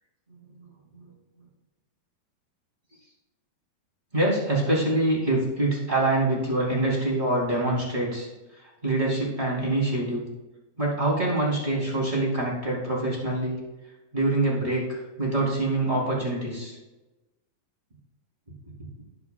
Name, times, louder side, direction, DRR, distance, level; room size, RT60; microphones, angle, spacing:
voice 1, 0.3-0.7 0.9-1.1 4.1-8.3 8.6-10.3 10.8-13.6 14.1-16.8 18.7-18.9, right 2 dB, 15° right, -5 dB, 2.6 m, -25 dB
20.0 x 7.6 x 2.3 m, 1.1 s
omnidirectional pair, 4.4 m